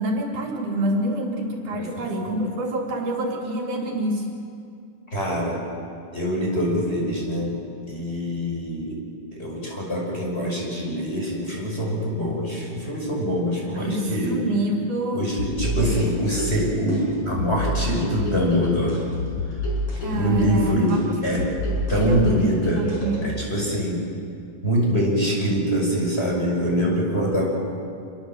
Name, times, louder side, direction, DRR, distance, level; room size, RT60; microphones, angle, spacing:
voice 1, 0.0-4.3 13.7-15.2 15.8-15.9 20.0-21.2 21.9-23.4, right 1 dB, 65° right, 0 dB, 4.1 m, -27 dB
voice 2, 1.7-2.4 5.1-5.6 6.1-7.6 7.9-9.0 9.3-14.4 15.1-19.0 20.1-21.4 21.9-22.9 23.2-24.0 24.6-27.5, equal, 15° left, -2 dB, 6.0 m, -24 dB
sound 1, 15.4-23.4, left 2 dB, 60° left, 7.1 m, -29 dB
26.5 x 22.0 x 7.8 m, 2.4 s
omnidirectional pair, 3.8 m